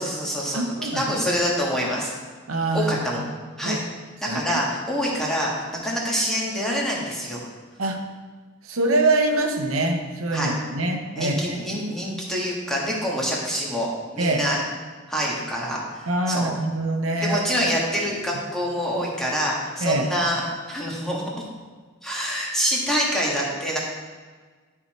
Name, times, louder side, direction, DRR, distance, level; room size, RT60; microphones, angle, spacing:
voice 1, 0.0-2.1 2.7-3.2 3.6-3.8 4.2-7.4 10.3-10.5 11.2-14.6 15.1-16.5 17.2-21.5 22.0-23.8, equal, ahead, -4 dB, 1.7 m, -26 dB
voice 2, 0.5-1.1 2.5-2.9 3.6-3.8 4.3-4.6 7.8-8.0 8.6-11.4 14.2-14.4 16.1-17.4 19.8-20.0, right 2 dB, 85° right, 3 dB, 0.9 m, -24 dB
11.0 x 4.7 x 4.3 m, 1.5 s
head